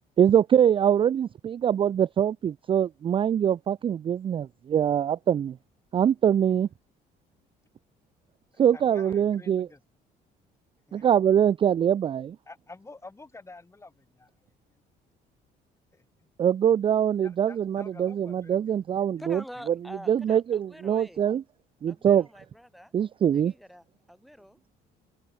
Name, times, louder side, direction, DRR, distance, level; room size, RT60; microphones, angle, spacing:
voice 1, 0.2-5.6 5.9-6.7 8.6-9.7 10.9-12.4 16.4-19.4 19.7-19.8 20.1-21.4 21.8-22.3 22.9-23.5, right 9 dB, 30° right, 0.3 m, -23 dB
voice 2, 8.5-9.8 10.9-11.1 12.5-14.3 15.9-16.0 17.2-18.7 19.2-19.3, left 3 dB, 15° left, 4.9 m, -48 dB
voice 3, 19.2-21.2 21.9-22.9 23.3-24.6, equal, ahead, 2.9 m, -46 dB
open air
cardioid pair, 110°, 17 cm